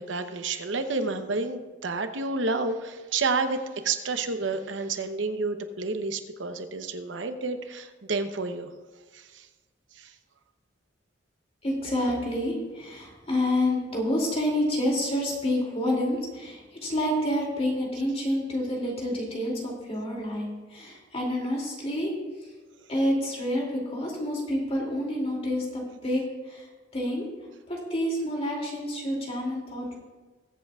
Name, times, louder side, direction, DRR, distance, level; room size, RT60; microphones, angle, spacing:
voice 1, 0.0-8.7 9.1-9.5 9.9-10.1, right 3 dB, 75° right, 8 dB, 0.9 m, -30 dB
voice 2, 11.6-22.1 22.4-22.5 22.9-26.7 26.9-27.3 27.7-29.9, left 1 dB, 35° left, -2 dB, 2.7 m, -28 dB
21.5 x 8.0 x 2.4 m, 1.3 s
head